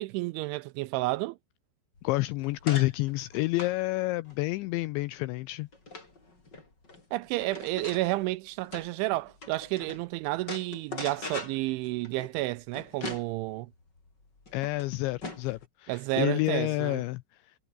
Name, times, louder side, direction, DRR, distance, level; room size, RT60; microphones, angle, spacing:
voice 1, 0.0-1.4 7.1-13.7 15.9-17.0, right 20 dB, 80° right, 2.8 m, -31 dB
voice 2, 2.0-5.7 14.5-17.5, left 20 dB, 90° left, 2.6 m, -29 dB
sound 1, 2.0-10.0 10.4-15.6, left 3 dB, 20° left, 5.4 m, -43 dB
omnidirectional pair, 5.8 m